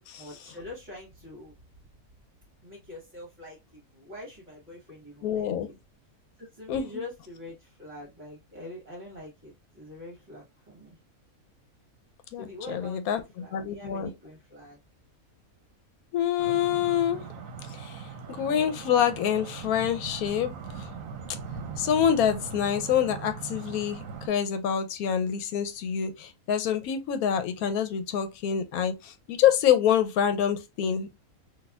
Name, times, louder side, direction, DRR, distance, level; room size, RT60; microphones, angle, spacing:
voice 1, 0.2-1.5 2.6-5.8 6.4-11.0 12.4-14.8, left 2 dB, 35° right, 1.3 m, -44 dB
voice 2, 5.2-5.7 6.7-6.9 12.3-13.2 13.5-14.1 16.1-17.2 17.7-18.0 18.3-20.9 21.8-31.1, left 9 dB, 80° left, 1.0 m, -26 dB
sound 1, 16.4-24.3, right 5 dB, 70° right, 1.0 m, -40 dB
4.1 x 2.6 x 2.2 m
omnidirectional pair, 1.5 m